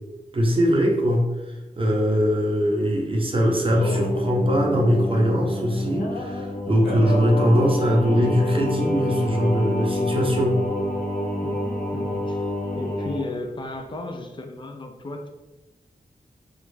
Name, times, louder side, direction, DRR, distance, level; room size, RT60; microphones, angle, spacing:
voice 1, 0.3-1.3 1.8-10.6, equal, 35° right, 0 dB, 0.6 m, -21 dB
Singing, 3.5-13.2, left 1 dB, 60° left, 0.7 m, -27 dB
voice 2, 11.4-12.4 12.7-15.3, left 2 dB, 30° left, 4 dB, 0.4 m, -35 dB
2.2 x 2.1 x 3.1 m, 1.1 s
cardioid pair, 45°, 16 cm